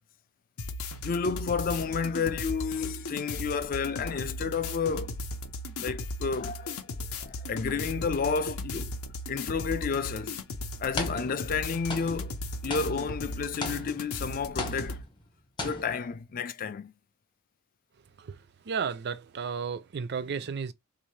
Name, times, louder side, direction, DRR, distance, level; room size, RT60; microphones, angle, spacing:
sound 1, 0.6-15.0, left 2 dB, 80° left, 0.6 m, -37 dB
voice 1, 1.0-5.2 5.8-6.9 7.2-8.9 9.3-10.4 10.8-12.4 12.6-15.0 15.6-16.9, left 5 dB, 40° left, 0.3 m, -31 dB
sound 2, 10.1-10.2 11.0-11.6 11.9-14.2 14.6-15.3 15.6-16.2, left 2 dB, 20° left, 0.8 m, -37 dB
voice 2, 18.7-20.7, right 6 dB, 50° right, 0.4 m, -33 dB
3.6 x 2.6 x 3.1 m
head